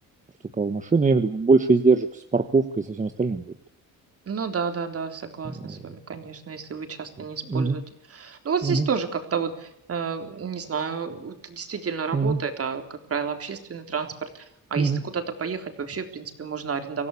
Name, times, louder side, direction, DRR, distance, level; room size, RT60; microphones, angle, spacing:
voice 1, 0.6-3.5 5.6-5.9 7.5-7.8 8.6-8.9 12.1-12.4 14.8-15.0, right 4 dB, 20° right, 8 dB, 1.3 m, -22 dB
voice 2, 4.3-7.8 8.1-14.5 14.7-17.1, right 6 dB, 40° right, 7 dB, 3.7 m, -31 dB
25.0 x 16.5 x 8.4 m, 0.76 s
cardioid pair, 125°, 35 cm